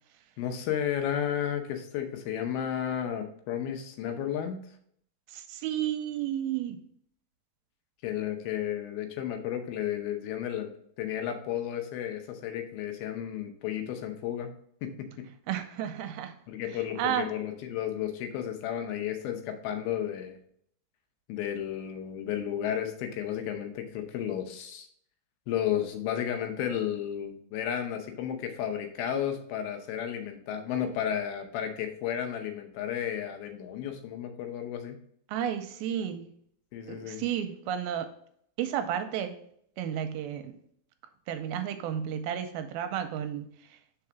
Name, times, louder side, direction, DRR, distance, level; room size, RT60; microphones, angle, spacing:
voice 1, 0.4-4.6 8.0-10.7 11.0-14.5 14.8-15.3 16.5-20.4 21.3-24.9 25.5-35.0 36.7-37.2, left 10 dB, 80° left, 2.6 m, -33 dB
voice 2, 5.3-6.8 15.5-16.4 17.0-17.3 35.3-36.3 36.9-38.1 38.6-39.4 39.8-40.6 41.3-43.8, right 10 dB, 85° right, 2.4 m, -32 dB
5.1 x 4.8 x 5.8 m
omnidirectional pair, 4.5 m